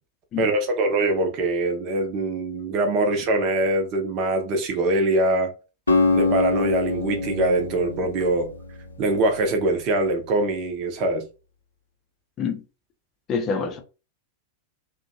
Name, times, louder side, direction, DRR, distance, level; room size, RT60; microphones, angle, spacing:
voice 1, 0.4-5.5 6.1-8.5 9.0-11.3, right 2 dB, 40° right, 0.7 m, -23 dB
Acoustic guitar, 5.9-10.0, left 3 dB, 75° left, 0.6 m, -25 dB
voice 2, 13.3-13.8, left 5 dB, 30° left, 0.5 m, -26 dB
2.6 x 2.2 x 2.6 m
figure-of-eight pair, 90°, 0 cm